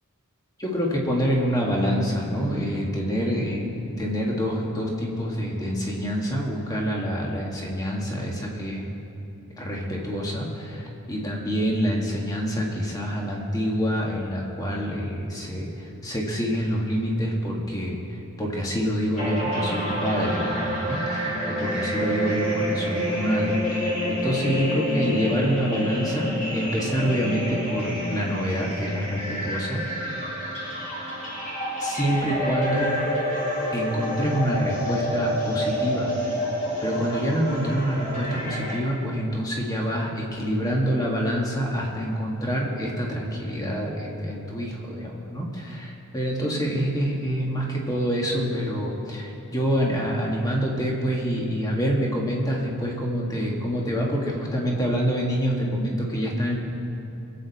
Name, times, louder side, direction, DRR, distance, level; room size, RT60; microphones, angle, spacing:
voice 1, 0.6-8.8 9.6-18.0 18.4-29.8 31.8-33.0 33.7-36.1 36.8-56.5, equal, 15° left, -2 dB, 1.9 m, -26 dB
sound 1, 19.2-38.8, equal, 35° left, 3.4 m, -28 dB
24.0 x 8.4 x 4.3 m, 2.8 s
head